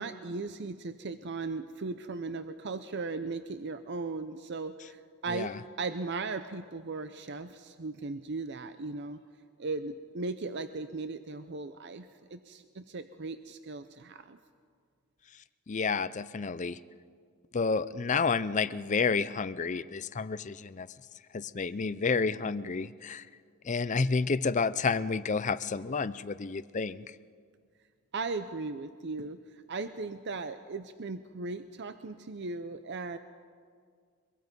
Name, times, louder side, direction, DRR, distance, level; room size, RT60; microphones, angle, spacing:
voice 1, 0.0-5.5 5.8-9.2 9.6-14.4 28.1-33.2, right 3 dB, 50° right, 10 dB, 0.6 m, -37 dB
voice 2, 5.3-5.6 15.7-16.8 17.5-20.9 21.3-23.3 23.6-27.2, left 4 dB, 35° left, 15 dB, 0.5 m, -30 dB
23.5 x 23.5 x 5.3 m, 2.1 s
head